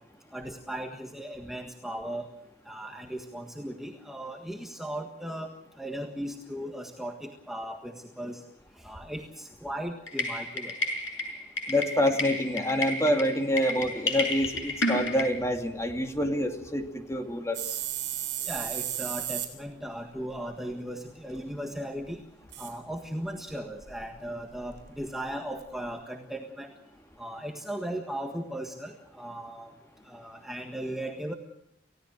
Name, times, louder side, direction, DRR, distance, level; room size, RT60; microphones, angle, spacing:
voice 1, 0.3-2.2 2.7-8.4 8.8-10.7 18.5-22.2 22.6-26.7 27.2-29.7 30.1-31.3, right 1 dB, ahead, 2 dB, 1.6 m, -37 dB
sound 1, 10.1-15.3, left 2 dB, 85° left, 6.7 m, -31 dB
voice 2, 11.7-17.8, equal, 15° left, 4 dB, 2.5 m, -27 dB
sound 2, 17.5-19.5 20.3-20.4 22.5-22.7 23.8-24.1 24.5-24.9 25.3-25.4 25.6-25.7, right 12 dB, 65° right, 4.6 m, -34 dB
30.0 x 17.0 x 6.3 m, 0.77 s
head